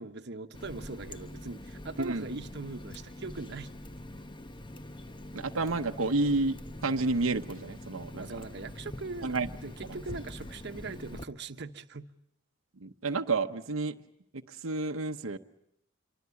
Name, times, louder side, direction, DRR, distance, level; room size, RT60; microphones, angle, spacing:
voice 1, 0.0-3.7 8.1-12.1, right 3 dB, 55° right, 7 dB, 1.1 m, -41 dB
Water tap faucet, 0.5-11.2, left 1 dB, 25° left, 1.0 m, -44 dB
voice 2, 2.0-2.3 5.3-8.3 9.2-9.5 9.9-10.0 12.8-14.0 14.3-15.4, right 3 dB, 85° right, 5 dB, 1.0 m, -30 dB
27.0 x 24.0 x 8.3 m, 0.77 s
head